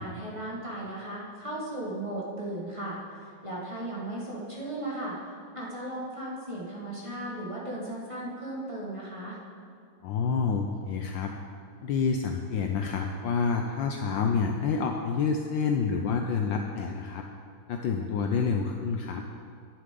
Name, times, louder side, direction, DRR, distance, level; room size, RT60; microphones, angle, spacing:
voice 1, 0.0-9.4, right 1 dB, 15° right, -6 dB, 1.4 m, -36 dB
voice 2, 10.0-11.3 11.8-17.3 17.7-19.2, left 5 dB, 75° left, 3 dB, 1.2 m, -28 dB
11.0 x 10.5 x 3.8 m, 2.3 s
omnidirectional pair, 2.4 m